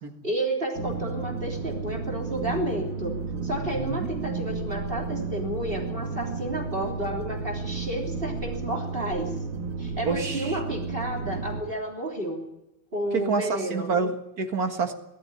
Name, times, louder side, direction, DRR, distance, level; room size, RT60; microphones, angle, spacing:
voice 1, 0.2-3.1 3.4-9.3 9.8-12.4 12.9-13.9, right 1 dB, 25° right, 0 dB, 3.5 m, -31 dB
sound 1, 0.7-11.6, right 4 dB, 75° right, 3.1 m, -33 dB
voice 2, 3.7-4.1 10.0-10.6 13.1-14.9, right 4 dB, 45° right, 6 dB, 2.2 m, -28 dB
19.0 x 14.0 x 10.0 m, 0.90 s
omnidirectional pair, 2.3 m